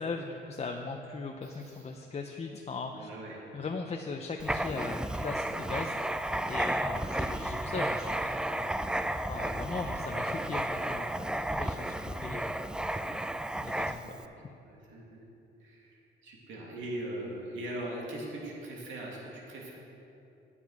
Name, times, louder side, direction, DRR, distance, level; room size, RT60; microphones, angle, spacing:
voice 1, 0.0-3.1 3.5-5.9 6.5-8.2 8.5-8.7 9.3-11.1 11.4-12.6 13.6-14.0, left 4 dB, 30° left, 3 dB, 0.7 m, -38 dB
voice 2, 1.4-1.9 2.9-3.4 11.8-12.1 13.9-14.2 14.6-15.2 15.6-19.7, right 1 dB, 75° right, -3 dB, 2.5 m, -41 dB
Writing, 4.4-14.2, right 1 dB, 5° right, 0.3 m, -33 dB
9.7 x 9.3 x 4.8 m, 2.8 s
cardioid pair, 90°, 20 cm